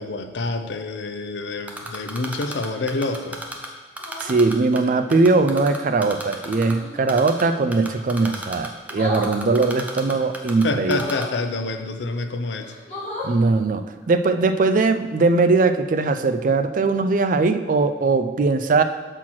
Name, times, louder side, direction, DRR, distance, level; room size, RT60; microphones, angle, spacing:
voice 1, 0.0-3.4 10.6-12.7, left 3 dB, 80° left, 8 dB, 0.6 m, -27 dB
Typing, 1.7-3.7 4.0-4.8 5.1-6.7 7.1-7.4 7.7-10.6 10.9-11.3, right 1 dB, 10° right, 0.7 m, -32 dB
sound 1, 2.4-2.8 4.0-4.4 6.6-7.1 8.9-9.3 10.8-11.4 12.1-12.2 12.6-13.4 15.0-15.2, left 1 dB, 40° left, 2.0 m, -34 dB
voice 2, 4.2-11.0 13.2-18.8, right 3 dB, 50° right, 9 dB, 0.4 m, -20 dB
5.8 x 4.4 x 6.1 m, 1.4 s
head